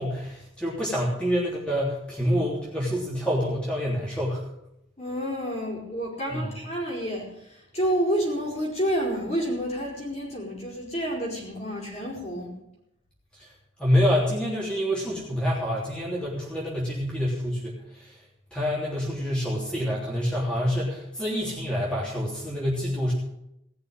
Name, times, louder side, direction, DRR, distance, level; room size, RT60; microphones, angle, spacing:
voice 1, 0.0-4.4 6.3-6.5 13.4-13.5 13.8-18.2 18.5-23.1, equal, 5° left, -5 dB, 3.4 m, -27 dB
voice 2, 5.0-12.6, equal, 35° left, -2 dB, 4.6 m, -29 dB
18.0 x 6.7 x 8.8 m, 0.80 s
head